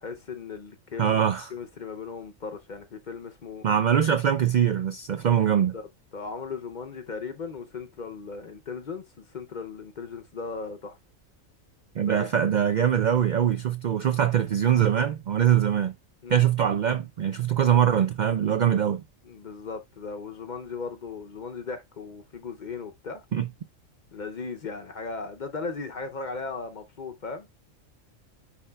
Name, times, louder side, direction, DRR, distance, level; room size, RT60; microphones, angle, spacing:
voice 1, 0.0-3.7 5.7-5.9 6.1-11.0 12.0-12.3 16.2-16.5 19.2-23.2 24.1-27.5, left 4 dB, 45° left, 0.6 m, -37 dB
voice 2, 1.0-1.5 3.6-5.7 12.0-15.9 16.3-19.0 23.3-23.5, right 9 dB, 85° right, 0.4 m, -23 dB
9.7 x 4.3 x 2.3 m
omnidirectional pair, 1.4 m